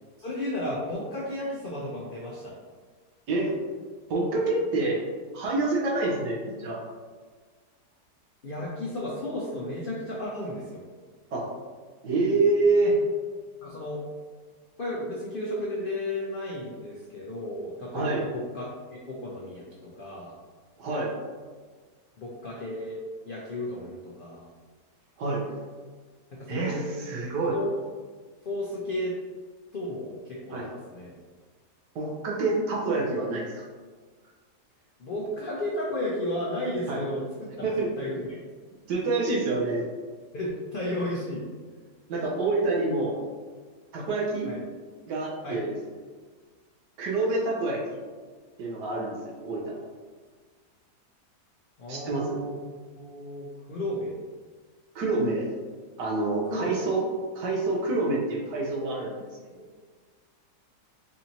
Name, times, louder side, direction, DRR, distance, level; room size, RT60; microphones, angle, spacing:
voice 1, 0.2-2.5 8.4-10.8 13.6-14.0 14.8-20.3 22.2-23.0 23.3-24.5 26.3-26.9 27.5-27.8 28.4-29.2 29.7-31.1 35.0-37.7 38.0-38.4 40.3-41.4 44.5-44.6 45.4-45.6 51.8-52.6 53.0-54.1 56.5-56.8, left 1 dB, 85° left, -5 dB, 0.4 m, -33 dB
voice 2, 3.3-3.6 4.1-5.0 5.3-6.8 11.3-11.5 12.0-13.0 17.9-18.2 20.8-21.1 25.2-25.4 26.5-27.6 30.5-30.6 31.9-33.4 36.9-37.0 37.6-37.9 38.9-39.9 42.1-43.2 43.9-44.5 45.0-45.8 47.0-48.0 48.6-49.7 51.9-52.4 54.9-55.5 56.0-57.0 57.3-59.3 59.6-59.7, right 3 dB, 80° right, -4 dB, 1.5 m, -27 dB
4.7 x 2.7 x 2.8 m, 1.5 s
omnidirectional pair, 1.8 m